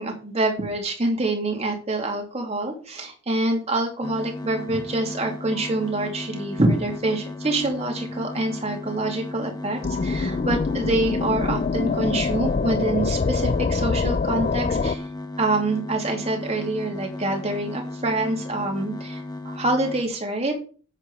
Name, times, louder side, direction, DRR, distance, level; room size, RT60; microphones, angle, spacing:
voice 1, 0.0-15.0 15.4-20.6, right 2 dB, 35° right, 2 dB, 2.7 m, -26 dB
sound 1, 4.0-20.0, left 2 dB, 20° left, 1.0 m, -35 dB
sound 2, 9.8-15.0, left 4 dB, 40° left, 0.4 m, -24 dB
8.3 x 7.8 x 4.9 m, 0.39 s
head